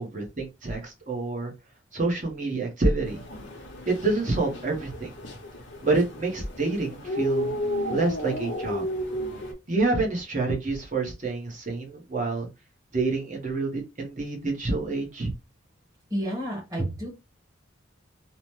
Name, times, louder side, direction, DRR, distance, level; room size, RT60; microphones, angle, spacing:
voice 1, 0.0-1.5 1.9-3.2 3.9-5.1 5.8-7.5 7.9-8.9 9.7-12.5 12.9-15.3, right 3 dB, 40° right, 1 dB, 0.9 m, -27 dB
sound 1, 3.0-9.5, left 1 dB, 60° left, 0.7 m, -33 dB
voice 2, 16.1-17.1, right 1 dB, 20° right, -3 dB, 1.1 m, -30 dB
2.9 x 2.0 x 3.1 m, 0.25 s
head